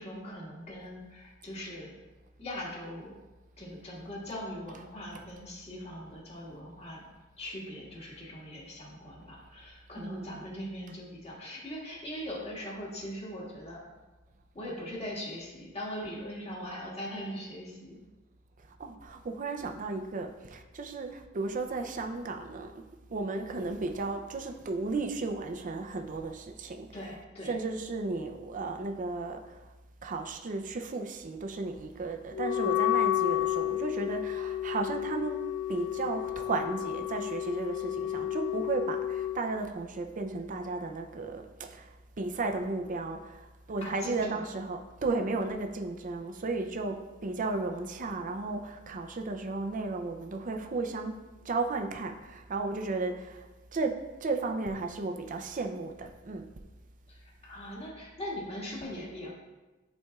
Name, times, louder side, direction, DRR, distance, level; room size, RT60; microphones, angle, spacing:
voice 1, 0.0-1.9 2.4-3.2 3.6-7.0 7.4-13.8 14.5-18.0 26.9-27.6 40.3-40.5 43.8-44.5 57.1-59.3, equal, 30° left, -5 dB, 1.8 m, -41 dB
voice 2, 10.0-10.3 18.8-22.8 23.1-27.1 27.5-29.7 30.0-51.2 51.4-56.5, right 3 dB, 40° right, 4 dB, 0.5 m, -34 dB
Wind instrument woodwind instrument, 32.3-39.4, left 12 dB, 55° left, 0.4 m, -31 dB
11.5 x 4.3 x 2.3 m, 1.2 s
head